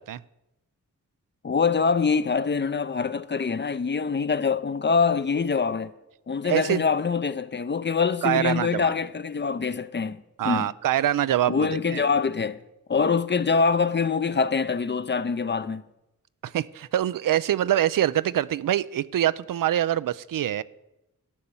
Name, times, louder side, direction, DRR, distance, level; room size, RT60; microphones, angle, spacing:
voice 1, 1.4-5.9 6.3-10.7 11.5-12.6 12.9-15.8, left 5 dB, 35° left, 0.6 m, -24 dB
voice 2, 6.4-6.8 8.2-8.9 10.4-12.0 16.4-20.6, right 12 dB, 80° right, 0.5 m, -24 dB
12.0 x 8.8 x 7.1 m
cardioid pair, 75°, 33 cm